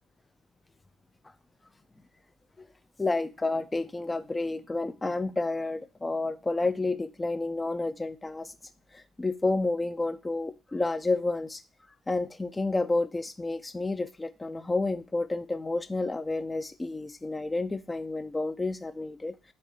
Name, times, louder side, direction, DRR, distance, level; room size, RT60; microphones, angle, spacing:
voice 1, 3.0-8.5 8.9-11.6 12.1-19.5, left 2 dB, 20° left, 0.4 m, -30 dB
3.3 x 2.8 x 4.0 m
figure-of-eight pair, 45°, 0 cm